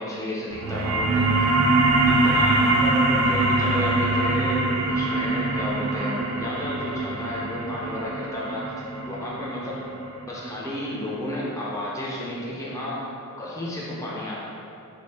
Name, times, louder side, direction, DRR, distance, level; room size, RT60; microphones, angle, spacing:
voice 1, 0.0-1.5 2.1-8.7 9.1-9.8 10.3-13.0 13.4-14.4, left 1 dB, 15° left, -6 dB, 0.4 m, -32 dB
sound 1, 0.5-11.6, right 2 dB, 70° right, 0.4 m, -23 dB
3.4 x 2.6 x 3.2 m, 2.6 s
head